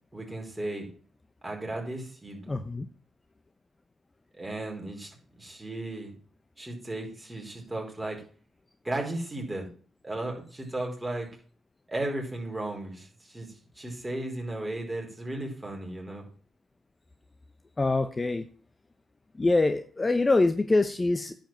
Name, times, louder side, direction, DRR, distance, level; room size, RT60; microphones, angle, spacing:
voice 1, 0.1-0.9 1.4-2.6 4.4-5.1 5.4-6.1 6.6-8.2 8.8-9.7 10.0-11.3 11.9-16.2, right 2 dB, 15° right, 0 dB, 4.7 m, -35 dB
voice 2, 2.5-2.9 17.8-18.5 19.4-21.4, left 2 dB, 25° left, 9 dB, 0.8 m, -24 dB
10.0 x 5.3 x 7.5 m, 0.42 s
supercardioid pair, 65°, 0 cm